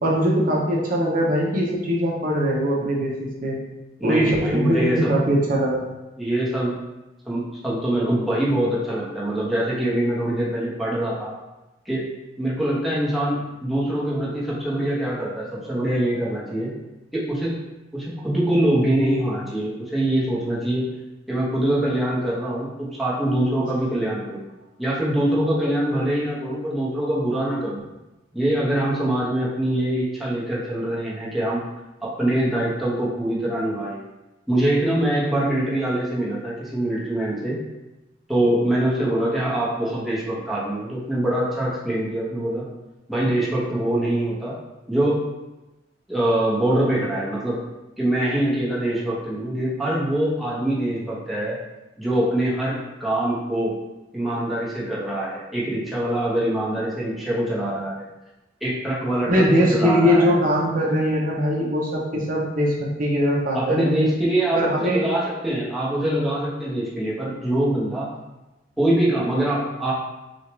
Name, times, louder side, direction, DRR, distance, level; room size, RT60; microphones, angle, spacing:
voice 1, 0.0-3.6 4.0-5.9 59.3-62.7 63.0-64.0 64.5-65.0, equal, 50° right, -3 dB, 0.8 m, -21 dB
voice 2, 4.0-5.1 6.2-6.7 7.2-11.3 11.8-12.1 12.4-16.7 17.1-17.5 17.9-20.9 21.3-24.4 24.8-27.8 28.3-31.6 32.0-34.0 34.5-37.6 38.3-42.6 43.1-44.5 44.9-45.2 46.1-47.6 48.0-51.6 52.0-53.7 54.1-58.0 58.6-60.3 63.5-68.1 68.8-69.9, right 1 dB, ahead, -7 dB, 1.0 m, -24 dB
6.1 x 2.4 x 3.1 m, 1.0 s
head